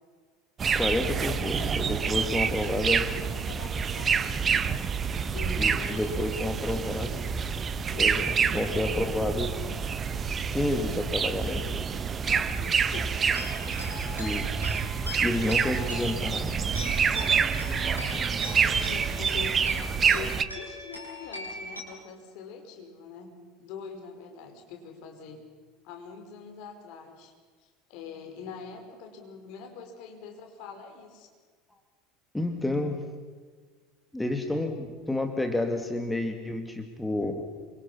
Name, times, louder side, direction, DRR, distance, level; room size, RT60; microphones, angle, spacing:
sound 1, 0.6-20.4, right 6 dB, 25° right, 1.2 m, -27 dB
voice 1, 0.7-3.2 5.5-7.1 8.0-9.7 10.5-12.0 14.2-14.7 15.2-16.6 18.1-18.2 32.3-33.0 34.1-37.5, left 2 dB, 5° left, 5 dB, 2.4 m, -30 dB
voice 2, 2.4-4.7 5.3-7.1 7.9-9.1 12.2-13.1 17.8-19.6 20.1-23.3 23.6-25.4 25.8-27.3 27.6-31.3, left 5 dB, 50° left, 3 dB, 5.0 m, -44 dB
sound 2, 13.2-21.8, left 2 dB, 85° left, 5.3 m, -41 dB
27.5 x 24.5 x 5.8 m, 1.5 s
figure-of-eight pair, 70°, 0 cm